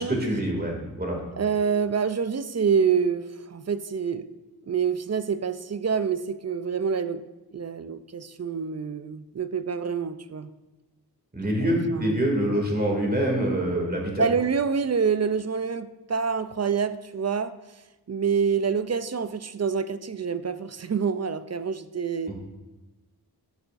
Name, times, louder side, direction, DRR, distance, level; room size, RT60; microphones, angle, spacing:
voice 1, 0.0-1.2 11.3-14.2 22.3-22.4, right 1 dB, 25° right, 0 dB, 2.3 m, -25 dB
voice 2, 1.4-4.3 4.7-7.2 7.5-10.5 11.6-12.1 12.5-12.6 14.2-17.5 18.1-22.3, right 6 dB, 40° right, 13 dB, 0.4 m, -27 dB
12.5 x 6.9 x 2.6 m, 1.1 s
wide cardioid pair, 45°, 40 cm